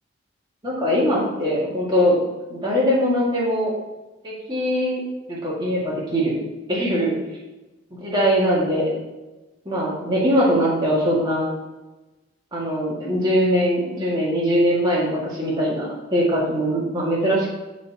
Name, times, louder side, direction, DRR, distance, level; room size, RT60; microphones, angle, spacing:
voice 1, 0.6-2.1 2.5-3.7 4.2-5.0 5.3-6.3 6.7-7.1 8.0-8.9 9.7-11.5 12.5-17.5, equal, 20° right, -6 dB, 2.1 m, -21 dB
12.0 x 4.1 x 3.0 m, 1.1 s
head